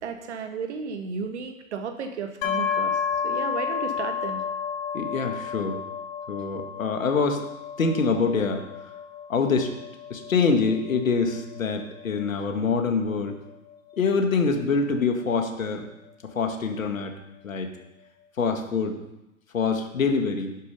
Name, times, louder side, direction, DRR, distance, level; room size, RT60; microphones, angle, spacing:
voice 1, 0.0-4.4, right 5 dB, 55° right, 7 dB, 1.7 m, -34 dB
sound 1, 2.4-16.1, left 7 dB, 40° left, 2.2 m, -33 dB
voice 2, 4.9-5.8 6.3-7.4 7.8-8.7 9.3-9.7 10.1-13.4 14.0-15.9 16.2-17.1 17.4-17.7 18.4-19.0 19.5-20.6, left 4 dB, 70° left, 5 dB, 2.0 m, -25 dB
11.0 x 8.5 x 5.5 m, 0.96 s
figure-of-eight pair, 115°, 41 cm